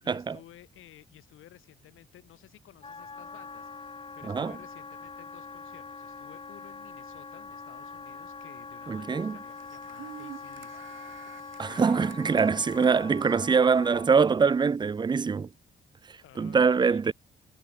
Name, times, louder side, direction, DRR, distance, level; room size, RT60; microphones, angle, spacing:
voice 1, 0.0-11.3 11.7-12.2 16.2-17.1, left 13 dB, 85° left, 3.3 m, -54 dB
Wind instrument woodwind instrument, 2.8-14.1, left 4 dB, 25° left, 1.7 m, -43 dB
voice 2, 4.3-4.6 8.9-9.4 11.6-15.5 16.1-17.1, right 5 dB, 20° right, 0.5 m, -24 dB
sound 1, 9.4-15.4, right 11 dB, 75° right, 2.6 m, -49 dB
cardioid pair, 110°, 20 cm